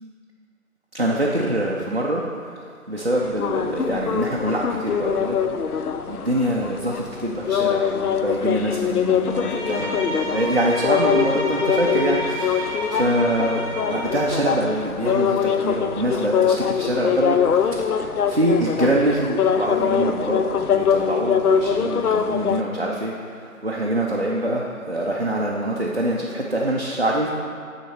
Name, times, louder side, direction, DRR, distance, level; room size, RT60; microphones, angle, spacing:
voice 1, 0.9-2.2 2.9-5.4 6.1-13.6 13.9-17.4 17.9-23.1 23.4-27.3, right 1 dB, 45° right, -3 dB, 0.4 m, -24 dB
sound 1, 3.1-22.6, left 7 dB, 85° left, 0.6 m, -23 dB
Bowed string instrument, 9.2-14.4, equal, 15° left, 1.7 m, -31 dB
9.3 x 3.7 x 4.4 m, 2.3 s
figure-of-eight pair, 175°, 44 cm